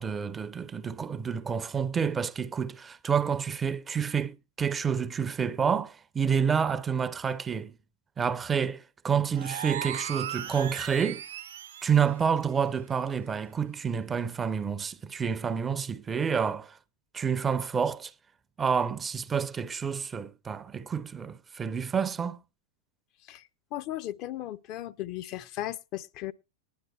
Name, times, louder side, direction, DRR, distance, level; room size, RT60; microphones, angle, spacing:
voice 1, 0.0-7.7 8.2-11.2 11.8-16.8 17.1-18.1 18.6-22.4, right 7 dB, 20° right, 0.5 m, -29 dB
sound 1, 9.3-12.0, right 10 dB, 65° right, 0.8 m, -37 dB
voice 2, 23.3-26.3, left 14 dB, 40° left, 0.5 m, -36 dB
19.5 x 10.5 x 2.3 m
figure-of-eight pair, 90°, 0 cm